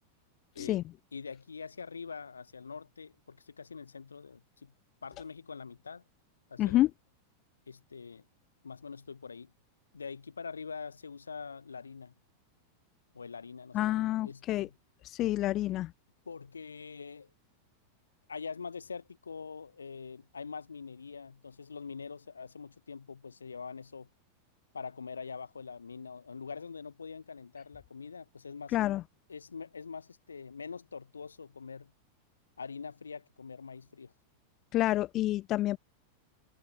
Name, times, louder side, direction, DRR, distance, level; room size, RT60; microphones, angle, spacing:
voice 1, 1.1-4.7 5.0-6.0 6.5-6.9 7.7-8.2 8.6-9.5 9.9-12.1 13.1-14.7 15.2-15.4 16.2-17.3 18.3-24.1 24.7-28.8 29.3-31.9 32.6-34.1, left 5 dB, 75° left, 1.4 m, -44 dB
voice 2, 6.6-6.9 13.7-14.7 15.0-15.9 28.7-29.0 34.7-35.8, left 15 dB, 35° left, 0.3 m, -28 dB
figure-of-eight pair, 90°, 0 cm